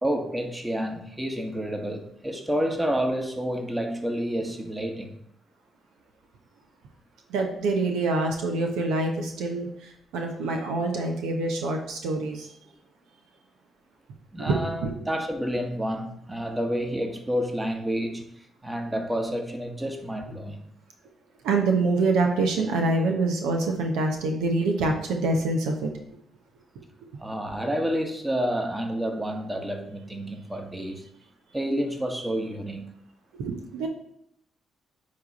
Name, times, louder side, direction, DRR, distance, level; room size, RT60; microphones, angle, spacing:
voice 1, 0.0-5.2 14.3-18.2 18.6-20.6 27.2-31.1 31.5-32.9, equal, 15° right, 4 dB, 1.3 m, -29 dB
voice 2, 7.3-12.5 14.4-14.9 21.4-25.9 33.3-33.9, right 3 dB, 80° right, 3 dB, 0.9 m, -26 dB
9.4 x 3.2 x 4.1 m, 0.74 s
supercardioid pair, 50°, 0 cm